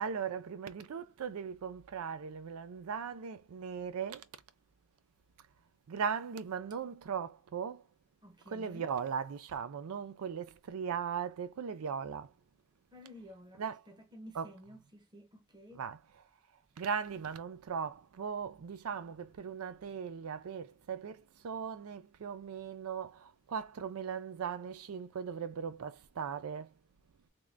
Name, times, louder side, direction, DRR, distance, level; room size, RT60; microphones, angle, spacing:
voice 1, 0.0-4.3 5.9-7.8 8.5-12.3 13.6-13.8 14.4-14.5 15.8-16.0 16.8-26.7, right 6 dB, 90° right, 0.4 m, -38 dB
voice 2, 8.2-8.9 12.9-15.8, left 1 dB, 20° right, 0.8 m, -53 dB
3.5 x 3.2 x 2.5 m
head